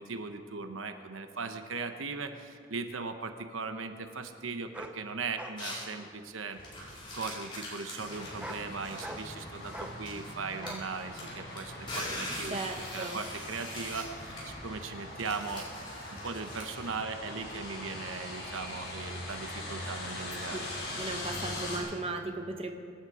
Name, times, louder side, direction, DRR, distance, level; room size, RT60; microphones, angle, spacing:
voice 1, 0.0-12.6 12.9-15.7 16.1-20.6, right 4 dB, 80° right, 7 dB, 1.0 m, -39 dB
sound 1, 2.6-2.7 4.7-5.0 5.4-5.6 6.0-6.5 7.2-7.4 8.2-8.7 9.0-9.3 9.7-10.0 10.6-10.8 11.4-11.5, right 1 dB, 5° right, 0.8 m, -43 dB
sound 2, 5.6-5.9 6.5-10.3 10.6-16.9, left 1 dB, 25° left, 4.6 m, -42 dB
sound 3, 8.0-21.8, left 1 dB, 60° left, 4.9 m, -42 dB
voice 2, 12.5-13.2 20.5-20.6 21.0-22.7, right 2 dB, 30° right, 4 dB, 1.0 m, -36 dB
24.5 x 9.6 x 4.9 m, 2.2 s
head